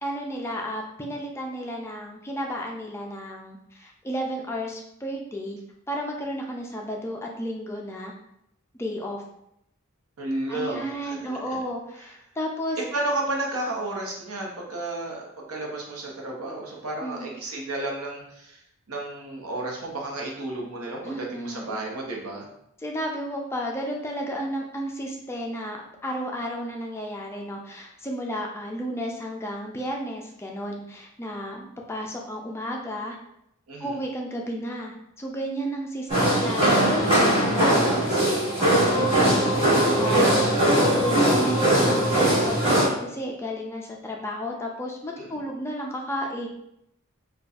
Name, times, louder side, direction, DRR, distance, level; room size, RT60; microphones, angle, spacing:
voice 1, 0.0-5.6 5.9-8.1 8.8-9.2 10.5-12.8 17.0-17.3 21.0-21.7 22.8-33.2 33.8-38.3 38.6-40.4 40.8-46.5, equal, 10° left, 0 dB, 0.3 m, -32 dB
voice 2, 10.2-11.4 12.9-18.6 18.9-22.5 33.7-34.0 40.0-40.7 45.2-45.3, right 2 dB, 80° right, -1 dB, 0.8 m, -32 dB
sound 1, 36.1-42.9, right 1 dB, 25° right, 1.3 m, -20 dB
4.1 x 2.3 x 2.4 m, 0.78 s
head